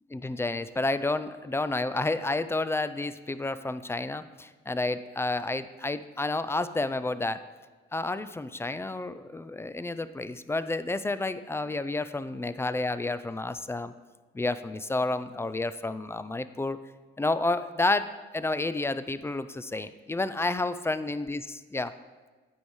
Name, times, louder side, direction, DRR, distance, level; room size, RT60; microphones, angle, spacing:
voice 1, 0.1-7.4 7.9-13.9 14.3-16.8 17.2-18.1 18.3-21.4 21.7-21.9, left 2 dB, 10° left, 13 dB, 0.3 m, -30 dB
9.4 x 8.6 x 3.2 m, 1.3 s
cardioid pair, 90°, 20 cm